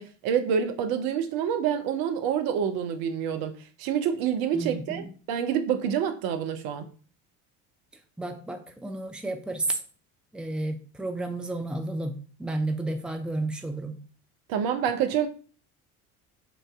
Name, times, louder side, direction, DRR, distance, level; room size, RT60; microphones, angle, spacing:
voice 1, 0.0-3.5 3.8-6.9 14.5-15.3, right 8 dB, 55° right, 8 dB, 0.7 m, -27 dB
voice 2, 4.5-5.1 8.2-9.8 10.3-12.1 12.4-13.9, right 2 dB, ahead, 5 dB, 0.6 m, -31 dB
5.8 x 2.6 x 3.4 m, 0.40 s
hypercardioid pair, 60°, 43 cm